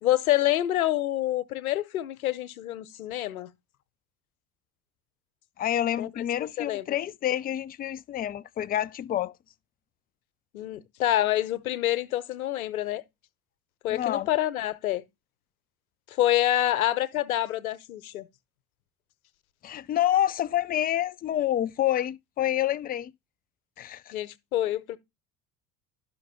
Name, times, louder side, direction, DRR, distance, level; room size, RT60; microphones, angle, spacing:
voice 1, 0.0-3.5 6.0-6.1 6.6-7.0 10.5-13.0 13.8-15.0 16.1-18.3 24.1-25.0, left 13 dB, 70° left, 0.9 m, -27 dB
voice 2, 5.6-9.3 13.9-14.3 19.6-23.1 23.8-24.1, left 12 dB, 20° left, 0.4 m, -28 dB
11.5 x 6.1 x 3.5 m
figure-of-eight pair, 60°, 44 cm